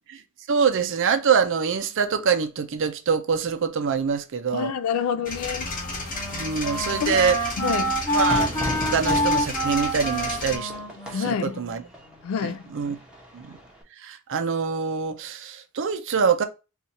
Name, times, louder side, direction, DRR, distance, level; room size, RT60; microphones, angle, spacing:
voice 1, 0.5-4.7 6.3-7.5 8.1-8.6 8.9-10.7 11.1-11.8 12.4-13.0 13.3-13.5 14.0-16.4, right 6 dB, 60° right, 0.5 m, -25 dB
voice 2, 4.5-5.7 7.0-7.2 7.6-8.0 11.1-11.5 12.2-12.6, left 7 dB, 75° left, 0.3 m, -27 dB
Wind instrument woodwind instrument, 5.1-12.3, equal, 10° left, 1.1 m, -28 dB
sound 1, 5.3-10.6, left 2 dB, 40° left, 0.8 m, -33 dB
Fire / Fireworks, 8.3-13.8, equal, 5° right, 0.8 m, -36 dB
2.8 x 2.4 x 4.0 m
head